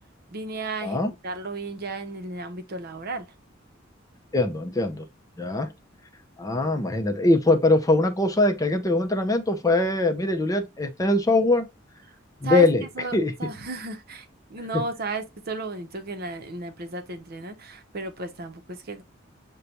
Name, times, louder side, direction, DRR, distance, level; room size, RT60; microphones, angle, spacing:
voice 1, 0.3-3.3 12.4-19.0, right 3 dB, 55° right, 0.7 m, -34 dB
voice 2, 4.3-5.0 5.4-5.7 6.4-11.7 12.4-12.8 13.1-13.3, left 2 dB, 20° left, 0.5 m, -22 dB
6.5 x 2.2 x 2.8 m
head